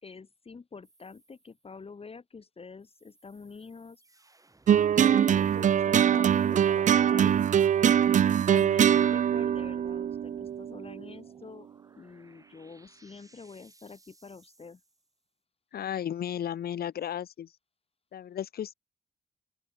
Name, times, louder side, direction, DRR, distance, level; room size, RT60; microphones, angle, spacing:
voice 1, 0.0-4.0 4.7-7.5 8.5-11.7 12.0-14.8, left 4 dB, 40° left, 3.1 m, -46 dB
sound 1, 0.8-1.7 2.8-5.5 9.1-15.2, right 2 dB, 20° right, 7.9 m, -62 dB
sound 2, 4.7-11.1, right 9 dB, 55° right, 0.5 m, -23 dB
voice 2, 15.7-17.5 18.1-18.7, left 10 dB, 75° left, 2.0 m, -34 dB
open air
cardioid pair, 85°, 16 cm